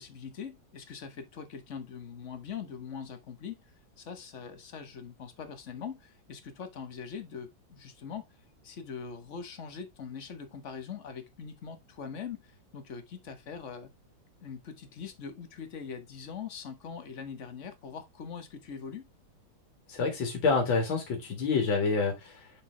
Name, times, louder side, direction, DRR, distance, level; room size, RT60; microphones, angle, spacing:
voice 1, 0.0-3.7 4.0-8.3 8.6-13.9 14.4-19.1, left 6 dB, 40° left, 1.5 m, -42 dB
voice 2, 19.9-22.5, left 4 dB, 85° left, 2.5 m, -28 dB
7.0 x 5.7 x 3.3 m
omnidirectional pair, 2.1 m